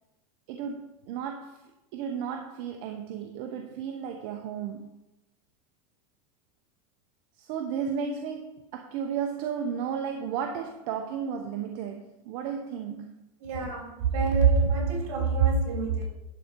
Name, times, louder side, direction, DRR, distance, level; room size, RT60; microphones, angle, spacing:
voice 1, 0.5-1.6 1.9-5.0 7.3-13.2, right 7 dB, 55° right, 0.9 m, -34 dB
voice 2, 13.4-16.0, right 5 dB, 70° right, 3.5 m, -25 dB
11.5 x 4.2 x 5.2 m
supercardioid pair, 140°, 19 cm